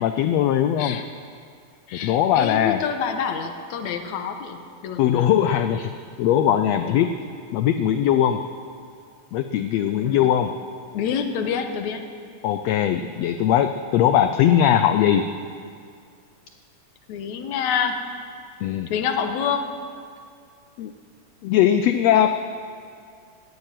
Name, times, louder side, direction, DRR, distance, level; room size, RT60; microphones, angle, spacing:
voice 1, 0.0-1.0 1.9-2.8 5.0-5.9 6.2-7.1 7.5-8.4 9.3-10.5 12.4-15.3 18.6-18.9 20.8-20.9 21.4-22.3, left 10 dB, 85° left, 9 dB, 1.4 m, -20 dB
voice 2, 1.9-5.3 6.9-7.1 9.9-10.3 10.9-12.0 17.1-18.0 18.9-19.7, left 7 dB, 70° left, 6 dB, 2.3 m, -27 dB
17.0 x 9.2 x 9.0 m, 2.3 s
omnidirectional pair, 3.6 m